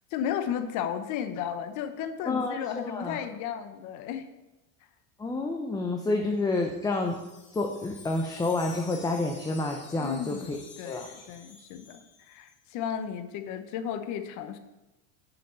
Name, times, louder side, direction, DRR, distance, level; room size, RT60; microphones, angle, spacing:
voice 1, 0.1-4.3 10.0-14.6, left 8 dB, 45° left, 9 dB, 0.9 m, -34 dB
voice 2, 2.2-3.2 5.2-7.2 7.5-10.6 10.8-11.1, left 2 dB, 10° left, 2 dB, 0.6 m, -29 dB
Wind chime, 6.4-12.6, left 4 dB, 30° left, 2.3 m, -50 dB
7.2 x 5.4 x 6.9 m, 1.0 s
supercardioid pair, 135°, 40 cm